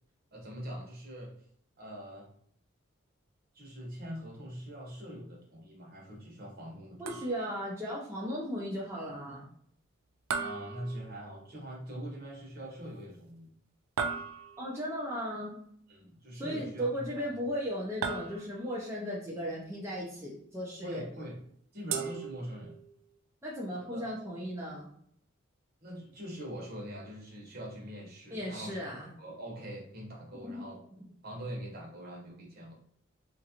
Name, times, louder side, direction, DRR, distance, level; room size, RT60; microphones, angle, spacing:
voice 1, 0.3-1.3 1.8-2.3 3.5-7.2 10.4-13.5 15.9-17.3 20.8-21.4 21.7-22.8 23.7-24.0 25.8-28.8 29.2-30.8 31.2-32.7, equal, 50° right, -2 dB, 1.0 m, -43 dB
voice 2, 7.0-9.5 14.6-15.6 16.3-21.0 23.4-24.9 28.3-29.1 30.4-30.6, equal, 15° right, -5 dB, 0.5 m, -36 dB
sound 1, 7.1-7.7 10.3-11.5 14.0-14.8 18.0-18.8 21.9-22.9, right 6 dB, 75° right, 0.3 m, -37 dB
3.0 x 2.5 x 2.8 m, 0.66 s
head